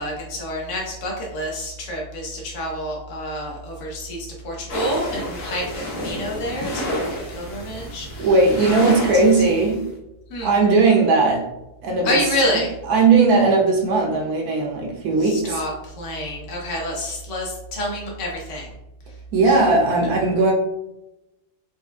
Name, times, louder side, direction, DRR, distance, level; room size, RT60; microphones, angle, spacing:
voice 1, 0.0-8.3 8.6-9.1 9.3-9.4 10.3-10.5 12.0-12.7 15.2-18.7 19.4-19.7, left 1 dB, 55° left, -2 dB, 1.3 m, -28 dB
sound 1, 4.7-9.8, equal, 80° left, 1.6 m, -29 dB
voice 2, 8.2-9.9 10.4-11.5 11.8-12.2 12.9-15.6 19.3-20.5, right 3 dB, 75° right, 0 dB, 1.2 m, -18 dB
4.4 x 3.3 x 2.3 m, 0.92 s
omnidirectional pair, 1.6 m